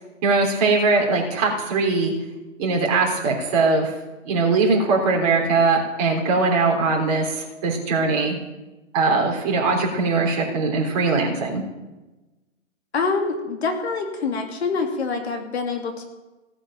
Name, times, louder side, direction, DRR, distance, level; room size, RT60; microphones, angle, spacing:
voice 1, 0.2-2.1 2.6-3.9 4.2-8.3 8.9-11.6, right 3 dB, 30° right, 0 dB, 3.5 m, -21 dB
voice 2, 12.9-16.0, left 4 dB, 50° left, 3 dB, 2.7 m, -25 dB
17.0 x 8.8 x 7.4 m, 1.1 s
figure-of-eight pair, 135°, 40 cm